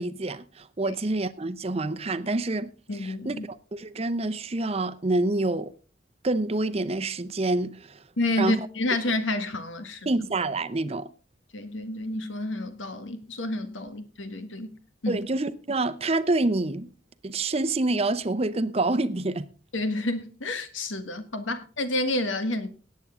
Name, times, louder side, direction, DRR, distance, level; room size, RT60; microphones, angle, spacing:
voice 1, 0.0-5.7 6.2-8.0 8.4-8.7 10.1-11.1 15.1-16.9 17.2-19.5, right 2 dB, 30° right, 0.7 m, -27 dB
voice 2, 2.9-3.4 8.2-10.1 11.5-14.8 15.0-15.2 19.7-22.7, left 2 dB, 90° left, 1.6 m, -29 dB
18.5 x 8.4 x 3.7 m
head